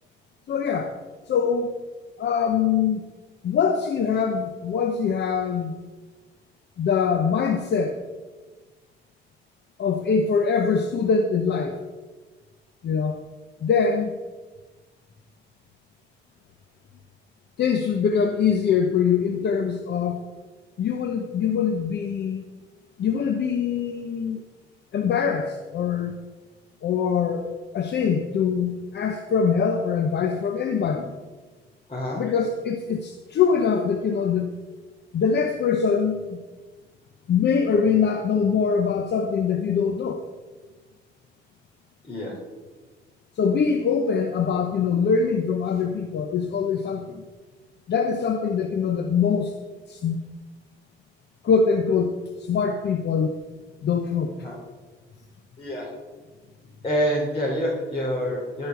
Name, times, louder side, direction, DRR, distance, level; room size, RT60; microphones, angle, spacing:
voice 1, 0.5-1.0 1.3-1.7 2.2-3.0 3.4-5.7 6.8-8.0 9.8-11.8 12.8-13.2 13.6-14.1 17.6-20.2 20.8-22.4 23.0-24.4 24.9-26.2 26.8-27.4 27.7-31.1 32.2-34.5 35.1-36.4 37.3-40.2 43.4-47.2 47.9-49.6 49.9-50.2 51.4-53.3 53.8-54.3, left 6 dB, 60° left, 6 dB, 0.9 m, -23 dB
voice 2, 31.9-32.2 42.1-42.3 54.4-54.6 55.6-55.9 56.8-58.7, equal, 30° left, -5 dB, 3.5 m, -26 dB
15.0 x 5.4 x 7.1 m, 1.3 s
cardioid pair, 90°, 20 cm